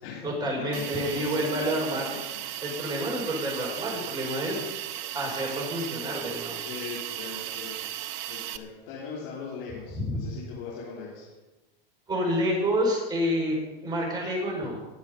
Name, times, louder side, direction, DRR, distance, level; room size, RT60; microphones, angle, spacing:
voice 1, 0.2-2.1 2.6-4.6 5.1-6.6 9.9-10.2 12.1-13.6 13.8-14.8, equal, 15° right, -2 dB, 5.7 m, -28 dB
voice 2, 0.7-1.2 6.6-11.3, left 5 dB, 65° left, -6 dB, 4.3 m, -40 dB
Hiss, 0.7-8.6, right 13 dB, 40° right, 0.9 m, -36 dB
21.0 x 7.6 x 5.5 m, 1.1 s
supercardioid pair, 125°, 30 cm